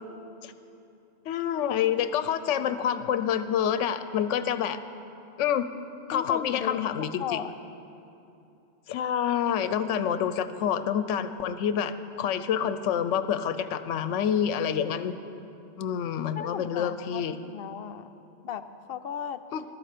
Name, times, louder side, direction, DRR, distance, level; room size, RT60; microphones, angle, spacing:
voice 1, 1.3-4.8 5.4-5.7 6.1-7.4 8.9-15.1 15.8-17.3 19.5-19.6, left 9 dB, 80° left, 11 dB, 0.9 m, -27 dB
voice 2, 6.1-7.5 16.4-18.1 18.4-19.4, left 8 dB, 65° left, 11 dB, 0.7 m, -36 dB
14.5 x 13.0 x 5.0 m, 2.8 s
omnidirectional pair, 1.3 m